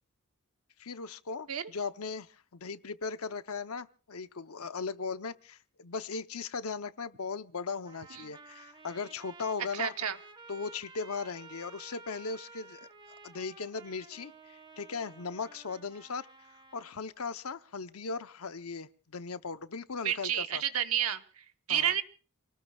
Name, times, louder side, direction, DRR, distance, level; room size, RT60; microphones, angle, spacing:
voice 1, 0.8-9.9 10.5-12.9 13.2-16.3 16.7-20.6 21.7-21.9, left 4 dB, 85° left, 11 dB, 0.8 m, -38 dB
Trumpet, 7.8-16.9, right 4 dB, 20° right, 1.1 m, -53 dB
voice 2, 9.7-10.2 20.0-22.0, right 10 dB, 80° right, 8 dB, 1.1 m, -31 dB
29.0 x 19.0 x 2.4 m, 0.38 s
head